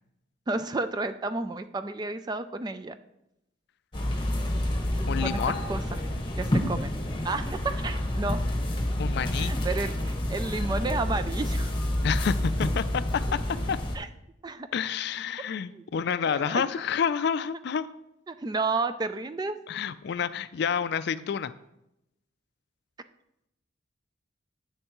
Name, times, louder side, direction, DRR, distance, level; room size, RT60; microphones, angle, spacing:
voice 1, 0.5-3.0 5.2-6.0 6.4-6.9 7.2-8.4 9.4-11.7 13.9-14.1 14.4-14.7 15.7-15.8 16.2-16.6 18.3-19.6, right 3 dB, 20° right, 11 dB, 0.3 m, -31 dB
sound 1, 3.9-14.0, left 1 dB, 25° left, 1.2 m, -29 dB
voice 2, 5.1-5.6 9.0-9.5 12.0-13.2 13.7-13.8 14.7-17.9 19.7-21.5, left 7 dB, 55° left, 14 dB, 0.3 m, -29 dB
9.8 x 7.2 x 3.0 m, 0.85 s
head